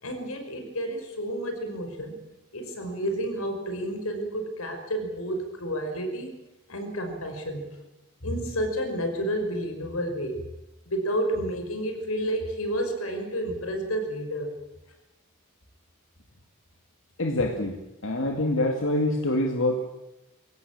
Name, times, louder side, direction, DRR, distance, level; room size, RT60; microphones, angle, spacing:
voice 1, 0.0-2.2 2.5-6.3 6.7-7.7 8.2-10.4 10.9-14.5, equal, 90° left, 5 dB, 5.7 m, -30 dB
voice 2, 17.2-17.7 18.0-19.8, left 1 dB, 60° left, 3 dB, 2.4 m, -25 dB
23.0 x 17.5 x 8.8 m, 0.98 s
head